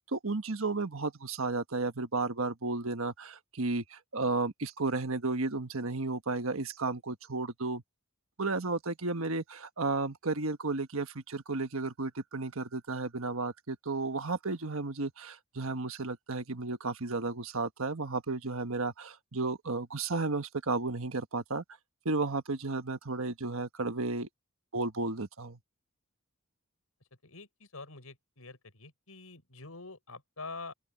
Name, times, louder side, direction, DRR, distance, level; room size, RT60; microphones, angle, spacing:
voice 1, 0.0-7.8 8.4-21.6 22.0-24.3 24.7-25.6, right 3 dB, 70° right, 1.4 m, -33 dB
voice 2, 27.2-30.7, left 3 dB, 80° left, 6.2 m, -46 dB
open air
head